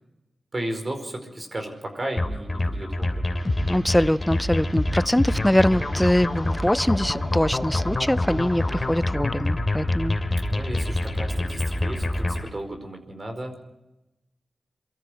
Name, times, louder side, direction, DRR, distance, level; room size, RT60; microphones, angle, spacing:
voice 1, 0.5-3.3 8.3-8.6 10.5-13.5, right 1 dB, 40° right, 5 dB, 4.9 m, -34 dB
sound 1, 2.2-12.5, left 1 dB, 30° left, 3.3 m, -26 dB
sound 2, 3.4-9.0, right 1 dB, 25° right, 2.4 m, -46 dB
voice 2, 3.7-10.2, left 1 dB, 10° left, 17 dB, 0.6 m, -23 dB
24.0 x 14.0 x 7.9 m, 0.96 s
cardioid pair, 55°, 0 cm